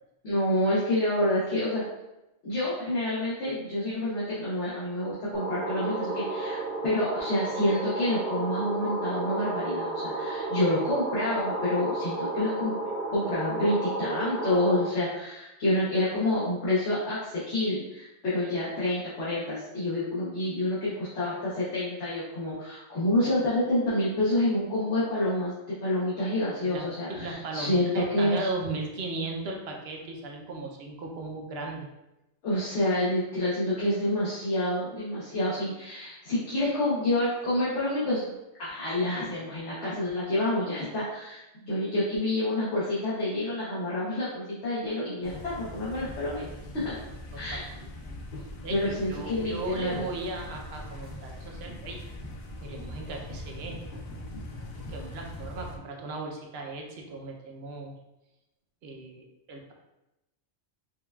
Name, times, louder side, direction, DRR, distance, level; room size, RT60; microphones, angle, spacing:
voice 1, 0.2-1.8 2.4-6.6 6.8-12.7 13.1-25.5 25.8-28.5 32.4-38.3 38.6-46.4 46.7-46.9 47.4-47.6 48.7-50.0, left 1 dB, 90° left, -9 dB, 1.2 m, -28 dB
sound 1, 5.3-14.8, right 2 dB, 90° right, 1.7 m, -32 dB
voice 2, 26.6-31.9 47.3-47.9 48.6-52.0 52.6-53.8 54.9-57.9 58.8-59.7, right 2 dB, 70° right, 1 dB, 0.8 m, -37 dB
sound 2, 45.2-55.8, left 1 dB, 60° left, 0.6 m, -41 dB
5.1 x 2.3 x 2.2 m, 0.95 s
omnidirectional pair, 1.1 m